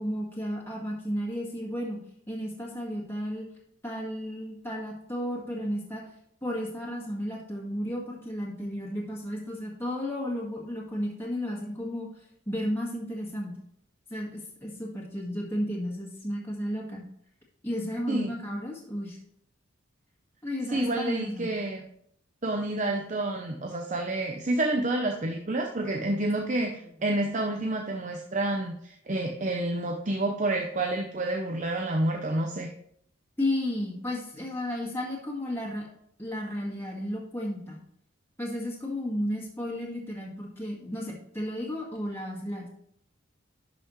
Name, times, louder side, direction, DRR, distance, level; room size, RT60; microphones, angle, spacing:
voice 1, 0.0-2.0 2.3-3.5 3.8-6.0 6.4-12.1 12.4-13.6 14.1-17.0 17.6-19.2 20.4-21.5 33.4-35.9 36.2-37.8 38.4-42.7, equal, 10° left, -4 dB, 1.8 m, -33 dB
voice 2, 20.7-21.8 22.4-32.7, right 2 dB, 35° right, 2 dB, 0.7 m, -29 dB
11.0 x 5.7 x 3.1 m, 0.70 s
head